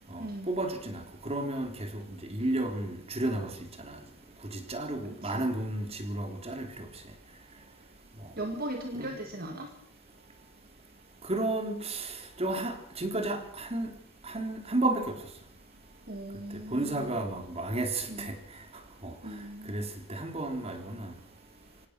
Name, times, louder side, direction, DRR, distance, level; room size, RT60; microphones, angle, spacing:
voice 1, 0.1-3.5 3.8-4.0 4.4-6.9 8.2-8.3 8.9-9.1 11.2-13.9 14.2-15.2 16.7-18.4 19.0-19.1 19.6-21.1, right 2 dB, 30° right, 5 dB, 3.3 m, -32 dB
voice 2, 8.4-9.7 16.1-17.1 18.1-18.3 19.2-19.8, right 1 dB, 45° right, 5 dB, 1.9 m, -38 dB
25.0 x 18.0 x 6.1 m, 0.65 s
head